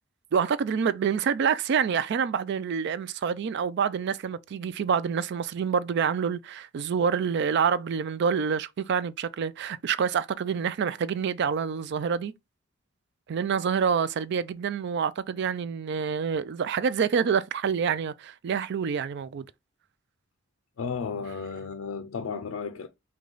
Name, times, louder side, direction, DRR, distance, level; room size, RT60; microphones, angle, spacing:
voice 1, 0.3-12.3 13.3-19.5, right 6 dB, 55° right, 0.4 m, -27 dB
voice 2, 20.8-22.9, left 5 dB, 80° left, 0.4 m, -33 dB
4.8 x 2.3 x 3.8 m
head